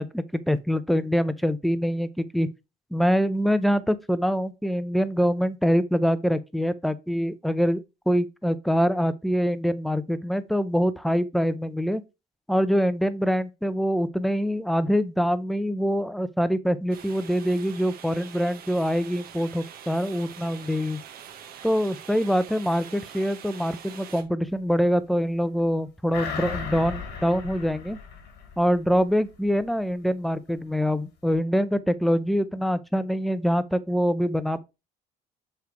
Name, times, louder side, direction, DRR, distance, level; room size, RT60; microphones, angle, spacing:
voice 1, 0.0-2.5 2.9-12.0 12.5-21.0 21.6-28.0 28.6-34.6, equal, ahead, 0.5 m, -24 dB
sound 1, 16.9-24.2, right 8 dB, 65° right, 1.1 m, -44 dB
sound 2, 26.1-29.0 29.4-29.5, left 6 dB, 85° left, 2.0 m, -36 dB
7.2 x 3.2 x 4.6 m
cardioid pair, 110°, 17 cm